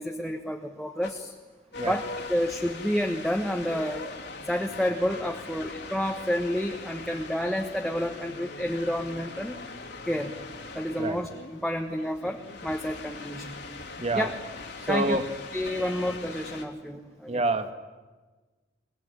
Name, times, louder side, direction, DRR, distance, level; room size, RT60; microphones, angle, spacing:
voice 1, 0.0-1.3 1.8-4.0 4.4-9.6 10.0-10.3 10.7-13.6 14.1-14.3 14.9-15.2 15.5-17.4, equal, ahead, 2 dB, 1.3 m, -30 dB
sound 1, 1.0-1.1 1.7-16.6, left 3 dB, 65° left, 2.9 m, -41 dB
voice 2, 14.0-14.3 14.8-15.2 17.3-17.7, right 2 dB, 35° right, 9 dB, 1.6 m, -27 dB
22.0 x 22.0 x 9.9 m, 1.3 s
head